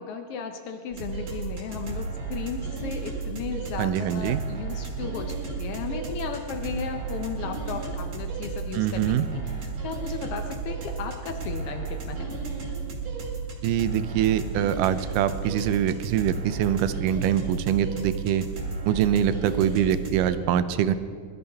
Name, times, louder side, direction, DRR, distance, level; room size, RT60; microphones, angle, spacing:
voice 1, 0.0-12.3, left 6 dB, 85° left, 6 dB, 1.3 m, -35 dB
sound 1, 0.9-20.4, right 4 dB, 55° right, 3.1 m, -33 dB
voice 2, 3.8-4.4 8.7-9.3 13.6-18.5 18.9-20.9, right 10 dB, 90° right, 12 dB, 2.2 m, -24 dB
21.0 x 13.0 x 3.5 m, 2.1 s
omnidirectional pair, 3.7 m